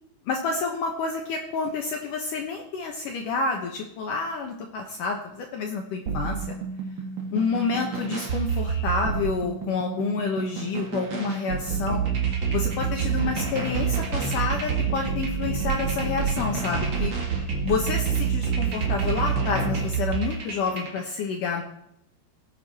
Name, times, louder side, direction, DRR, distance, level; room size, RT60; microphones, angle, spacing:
voice 1, 0.3-6.6 7.3-12.0 12.5-17.1 17.6-21.6, left 4 dB, 70° left, 2 dB, 2.1 m, -29 dB
sound 1, 6.0-21.0, right 6 dB, 55° right, 1.3 m, -28 dB
18.5 x 8.5 x 4.3 m, 0.77 s
omnidirectional pair, 5.1 m